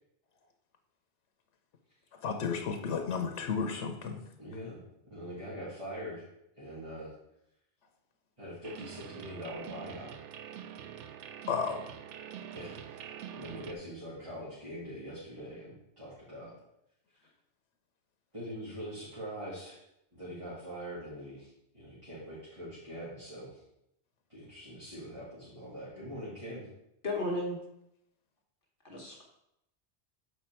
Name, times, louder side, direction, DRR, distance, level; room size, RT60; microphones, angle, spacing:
voice 1, 2.2-4.2 11.5-11.8, left 5 dB, 85° left, 4 dB, 1.1 m, -33 dB
voice 2, 4.4-4.8 5.1-6.2 6.6-7.1 8.4-10.1 12.5-16.5 18.3-19.8 20.1-23.6 24.3-26.7, equal, 25° right, -9 dB, 2.2 m, -43 dB
sound 1, 8.6-13.7, right 9 dB, 85° right, 0.9 m, -45 dB
voice 3, 27.0-27.6 28.8-29.2, left 1 dB, 50° left, -2 dB, 1.3 m, -33 dB
6.9 x 4.6 x 4.4 m, 0.81 s
omnidirectional pair, 1.2 m